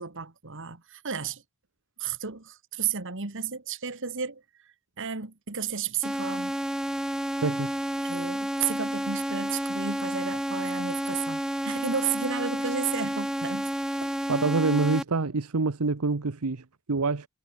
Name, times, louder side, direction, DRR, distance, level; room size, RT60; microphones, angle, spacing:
voice 1, 0.0-1.4 2.0-4.4 5.0-6.6 8.0-13.7 14.0-14.1, right 6 dB, 60° right, 2.1 m, -33 dB
sound 1, 6.0-15.0, equal, 5° right, 1.0 m, -30 dB
voice 2, 7.4-7.7 14.3-17.3, right 3 dB, 80° right, 1.0 m, -26 dB
head